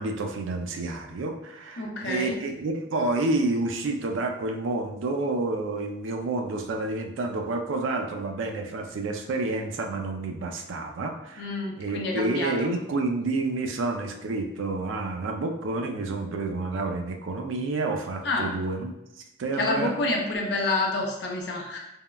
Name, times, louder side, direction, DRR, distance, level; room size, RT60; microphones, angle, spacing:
voice 1, 0.0-11.5 11.8-18.9 19.4-19.9, right 2 dB, 85° right, 4 dB, 0.4 m, -29 dB
voice 2, 1.8-2.4 11.4-12.7 18.2-18.5 19.6-21.8, left 2 dB, 60° left, -1 dB, 0.5 m, -28 dB
3.5 x 2.1 x 2.2 m, 0.90 s
head